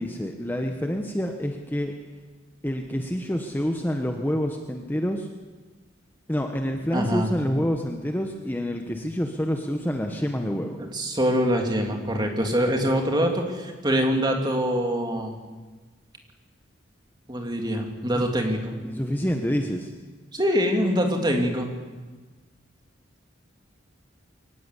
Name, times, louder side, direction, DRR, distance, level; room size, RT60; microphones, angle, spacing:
voice 1, 0.0-1.9 2.6-5.3 6.3-10.8 18.8-19.9, equal, 10° left, 3 dB, 1.2 m, -27 dB
voice 2, 6.9-7.3 10.8-15.3 17.3-18.7 20.3-21.7, equal, 20° right, 2 dB, 2.9 m, -24 dB
23.0 x 19.0 x 8.4 m, 1.3 s
head